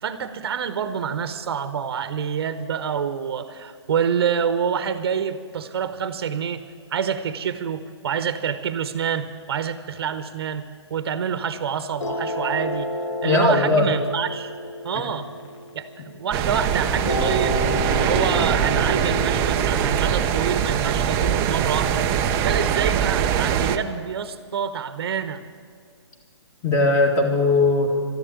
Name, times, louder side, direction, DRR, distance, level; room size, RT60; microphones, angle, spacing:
voice 1, 0.0-6.6 6.9-12.9 13.2-14.5 14.8-15.3 15.7-17.6 17.9-22.1 22.4-25.4, right 7 dB, 55° right, 11 dB, 0.9 m, -27 dB
sound 1, 12.0-16.4 17.1-22.0, left 1 dB, 85° left, 1.4 m, -31 dB
voice 2, 13.2-14.0 15.1-15.2 26.6-28.0, left 2 dB, 20° left, 3 dB, 1.9 m, -19 dB
sound 2, 16.3-23.8, right 8 dB, 20° right, 0.5 m, -22 dB
13.0 x 11.5 x 8.3 m, 2.1 s
hypercardioid pair, 155°, 15 cm